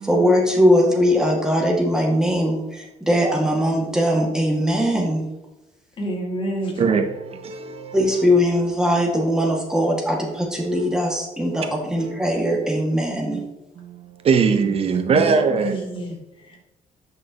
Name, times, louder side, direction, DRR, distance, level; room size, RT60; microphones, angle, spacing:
voice 1, 0.0-5.2 7.9-13.4, equal, 5° right, -1 dB, 1.8 m, -20 dB
voice 2, 3.7-4.3 4.6-4.7 6.8-8.3 10.6-11.0 11.5-11.7 12.0-12.2 13.8-15.8, right 5 dB, 45° right, 7 dB, 0.7 m, -23 dB
voice 3, 6.0-6.8 14.8-16.6, right 1 dB, 40° left, 1 dB, 2.0 m, -29 dB
8.6 x 6.4 x 2.9 m, 0.98 s
cardioid pair, 135°, 14 cm